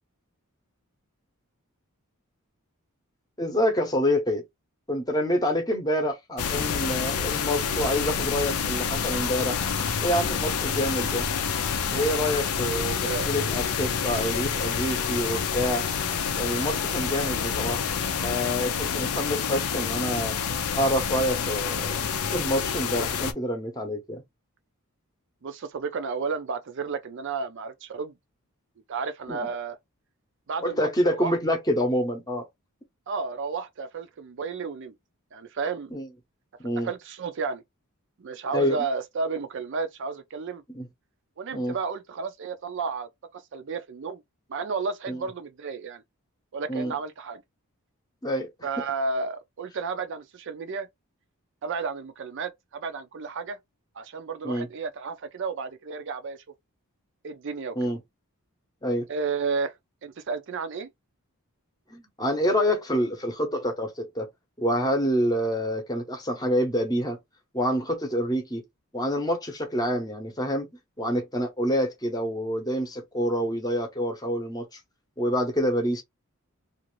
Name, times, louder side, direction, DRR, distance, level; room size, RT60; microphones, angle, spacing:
voice 1, 3.4-4.4 4.9-9.6 10.0-11.3 11.9-13.0 13.2-15.9 16.4-17.8 18.2-20.4 20.7-22.0 22.3-24.2 29.3-29.4 30.6-32.5 35.9-36.1 36.6-36.9 38.5-38.8 40.7-40.9 41.5-41.8 45.1-45.2 46.7-46.9 48.2-48.5 54.4-54.7 57.7-58.0 58.8-59.1 61.9-64.3 64.6-67.2 67.5-68.6 68.9-70.7 71.0-74.7 75.2-76.0, equal, 15° left, 0.8 m, -27 dB
sound 1, 6.4-23.3, left 7 dB, 80° left, 0.5 m, -28 dB
voice 2, 12.6-13.3 25.4-28.1 28.9-29.8 30.5-31.4 33.1-34.9 35.3-35.9 36.8-37.6 38.2-40.6 41.4-44.2 44.5-46.0 46.5-47.4 48.6-50.9 51.6-53.6 54.0-56.4 57.2-57.9 59.1-59.7 60.0-60.9, right 4 dB, 55° right, 0.4 m, -32 dB
2.5 x 2.4 x 3.0 m
head